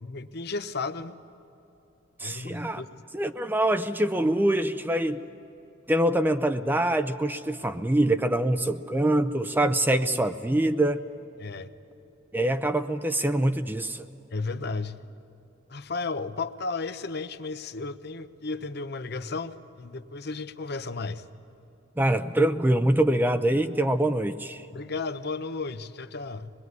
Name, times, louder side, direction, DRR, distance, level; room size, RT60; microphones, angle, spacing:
voice 1, 0.0-1.2 2.2-3.0 11.4-11.7 14.3-15.0 15.7-21.2 24.7-26.5, left 3 dB, 55° left, 12 dB, 0.8 m, -34 dB
voice 2, 2.2-2.8 3.1-5.2 5.9-11.0 12.3-14.1 22.0-24.7, right 1 dB, 10° right, 9 dB, 0.5 m, -24 dB
25.0 x 20.5 x 9.5 m, 2.9 s
head